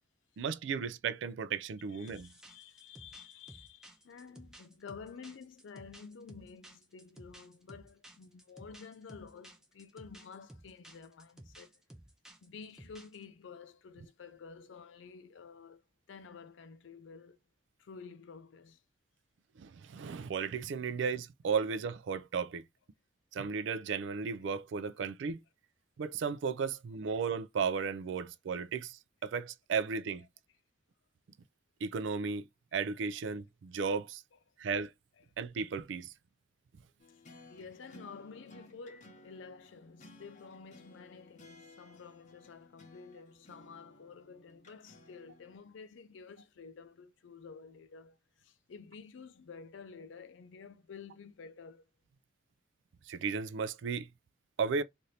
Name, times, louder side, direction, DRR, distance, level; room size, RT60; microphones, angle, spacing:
voice 1, 0.4-2.3 19.6-22.6 23.3-25.4 26.0-30.3 31.8-32.4 32.7-34.2 34.6-34.9 35.4-36.1 53.1-54.1 54.6-54.8, right 5 dB, 80° right, 0.3 m, -35 dB
voice 2, 1.9-11.8 12.4-15.8 16.1-17.4 17.8-18.8 34.3-34.4 35.2-35.3 37.1-51.8, left 5 dB, 85° left, 0.4 m, -51 dB
sound 1, 2.1-13.2, right 1 dB, 5° right, 0.4 m, -55 dB
sound 2, 37.0-45.6, left 1 dB, 40° left, 0.8 m, -58 dB
2.8 x 2.5 x 3.2 m
head